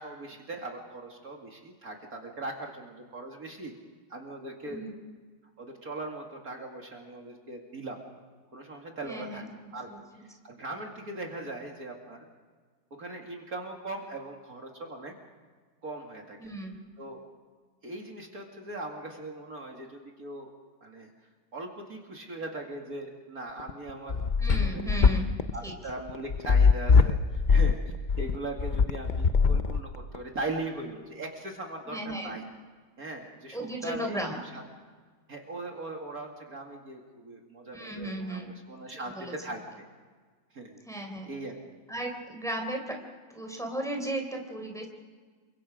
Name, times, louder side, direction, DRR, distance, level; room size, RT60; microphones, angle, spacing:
voice 1, 0.0-3.7 4.1-4.8 5.6-8.0 8.5-9.4 9.7-9.9 10.2-12.3 12.9-15.1 15.8-16.4 17.0-17.2 17.8-20.5 20.8-21.1 21.5-24.2 24.4-25.1 25.5-32.4 33.0-34.2 34.5-34.6 35.3-39.6 40.5-40.8 41.3-41.6, right 2 dB, 50° right, 1 dB, 2.7 m, -39 dB
voice 2, 9.0-9.5 9.9-10.0 16.4-16.8 24.4-25.4 25.6-25.7 31.9-32.4 33.5-34.4 37.7-38.5 39.1-39.6 40.8-41.3 41.9-43.0 43.3-44.9, right 1 dB, ahead, 2 dB, 3.7 m, -35 dB
sound 1, 23.6-30.2, left 5 dB, 90° left, 0.4 m, -22 dB
28.5 x 24.0 x 5.1 m, 1.5 s
omnidirectional pair, 2.0 m